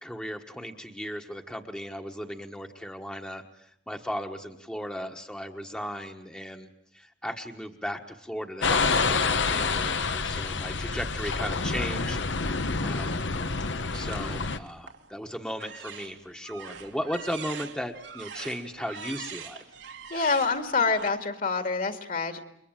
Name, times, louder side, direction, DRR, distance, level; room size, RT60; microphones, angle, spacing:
voice 1, 0.0-6.7 6.9-12.2 12.5-13.2 13.9-19.6, equal, 5° left, 3 dB, 1.3 m, -36 dB
sound 1, 8.6-14.6, left 4 dB, 90° left, 1.3 m, -27 dB
sound 2, 13.9-15.1 15.5-21.1, right 6 dB, 85° right, 2.5 m, -43 dB
voice 2, 20.1-22.4, left 4 dB, 50° left, 8 dB, 2.3 m, -26 dB
29.0 x 23.0 x 9.0 m, 0.76 s
head